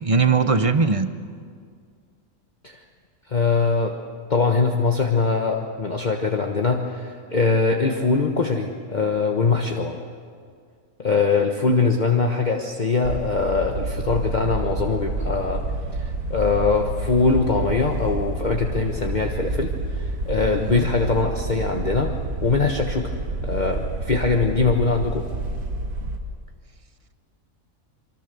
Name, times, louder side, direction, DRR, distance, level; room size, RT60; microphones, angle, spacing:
voice 1, 0.0-1.1 20.6-20.9, right 4 dB, 30° right, 10 dB, 0.8 m, -20 dB
voice 2, 3.3-3.9 4.3-10.0 11.0-15.6 15.9-22.1 22.4-23.1 23.4-25.3, left 4 dB, 35° left, 2 dB, 1.3 m, -22 dB
sound 1, 13.0-26.2, right 2 dB, 85° right, 2.1 m, -29 dB
25.5 x 24.5 x 6.9 m, 2.1 s
omnidirectional pair, 1.4 m